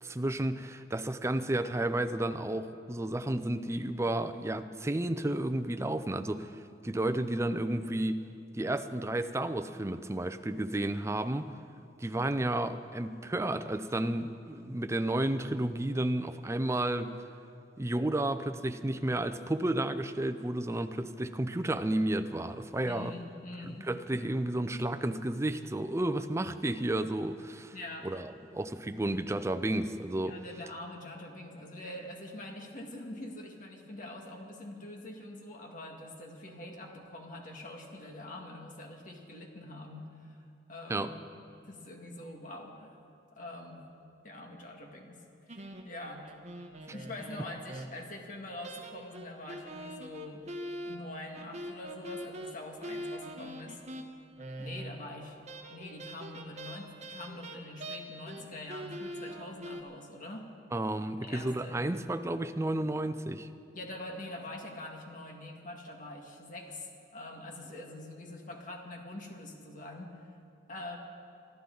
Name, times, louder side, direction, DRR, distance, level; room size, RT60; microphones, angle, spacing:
voice 1, 0.0-6.5 6.8-8.2 8.5-11.5 12.0-17.1 17.8-23.1 23.6-27.7 28.0-30.4 40.9-41.1 60.7-63.5, right 1 dB, 15° right, 10 dB, 0.5 m, -32 dB
voice 2, 22.8-23.9 27.7-28.1 30.2-40.4 40.7-41.2 41.7-43.0 43.4-43.8 44.2-46.2 46.8-50.4 50.8-53.8 54.6-55.4 55.7-60.5 61.2-61.8 63.7-70.1 70.7-71.0, left 1 dB, 50° left, 1 dB, 1.9 m, -44 dB
sound 1, 45.5-48.2 48.6-55.1 55.5-58.4 58.7-59.8, right 1 dB, 40° right, 1.1 m, -43 dB
25.5 x 12.0 x 3.9 m, 2.4 s
head